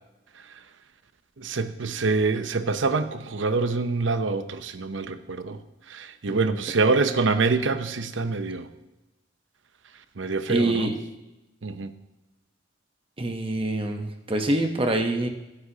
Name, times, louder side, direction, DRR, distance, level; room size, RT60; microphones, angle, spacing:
voice 1, 1.4-5.6 5.9-8.7 10.2-10.9 11.6-11.9, right 4 dB, 75° right, 10 dB, 0.8 m, -25 dB
voice 2, 10.5-11.0 13.2-15.3, right 1 dB, 30° right, 5 dB, 0.9 m, -25 dB
21.5 x 9.8 x 2.8 m, 1.0 s
head